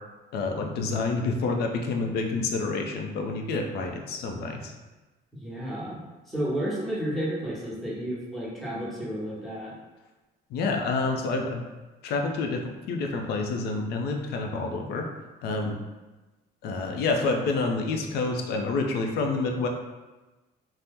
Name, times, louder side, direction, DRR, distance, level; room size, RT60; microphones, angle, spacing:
voice 1, 0.3-4.7 10.5-11.6 12.0-15.1 15.4-15.8 16.6-19.7, left 3 dB, 75° left, 3 dB, 0.5 m, -28 dB
voice 2, 5.4-6.0 6.3-9.7, equal, ahead, -8 dB, 1.0 m, -31 dB
2.8 x 2.0 x 3.5 m, 1.2 s
cardioid pair, 110°, 17 cm